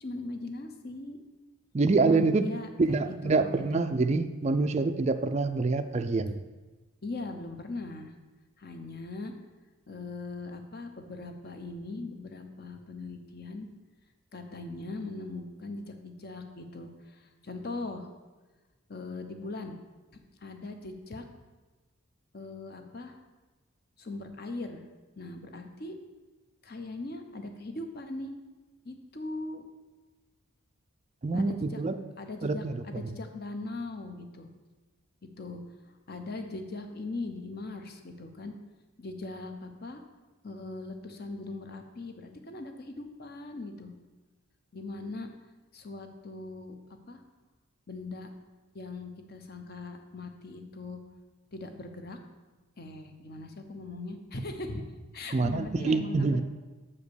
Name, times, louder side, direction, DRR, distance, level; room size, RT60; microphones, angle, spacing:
voice 1, 0.0-1.2 2.0-3.9 7.0-8.1 8.6-9.3 9.9-13.7 14.3-18.1 18.9-19.8 20.4-21.2 22.3-23.2 24.0-24.8 25.2-25.9 26.6-28.3 28.8-29.6 31.3-31.8 32.2-34.5 35.4-35.6 36.1-38.5 39.0-40.0 40.4-43.9 44.7-45.3 45.7-46.7 47.1-47.2 47.9-48.3 48.7-51.0 51.5-52.2 52.8-54.8 55.1-56.4, left 2 dB, 45° left, 6 dB, 0.8 m, -40 dB
voice 2, 1.7-2.5 2.8-6.4 31.2-32.0 32.4-33.1 55.3-56.4, right 3 dB, 30° right, 8 dB, 0.3 m, -26 dB
7.0 x 5.0 x 6.8 m, 1.2 s
head